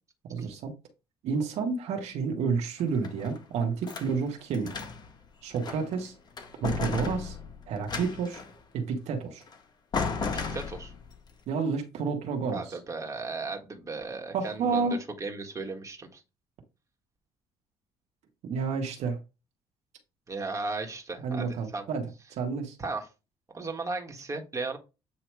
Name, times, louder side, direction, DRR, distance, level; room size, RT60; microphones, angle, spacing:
voice 1, 0.3-0.7 1.2-4.8 5.4-6.1 6.6-7.4 7.7-8.4 8.7-9.4 11.5-12.8 14.3-15.0 18.5-19.2 21.2-22.8, right 5 dB, 70° right, 1.5 m, -30 dB
sound 1, 2.8-4.1 4.5-5.1 5.5-6.1 6.4-8.5 9.5-9.6 9.9-11.1, left 5 dB, 40° left, 1.3 m, -34 dB
voice 2, 10.3-10.9 12.5-14.9 15.2-16.2 20.3-21.5 21.7-21.8 22.8-23.0 23.5-24.8, right 3 dB, 25° right, 1.7 m, -35 dB
8.5 x 2.9 x 4.7 m
cardioid pair, 100°, 12 cm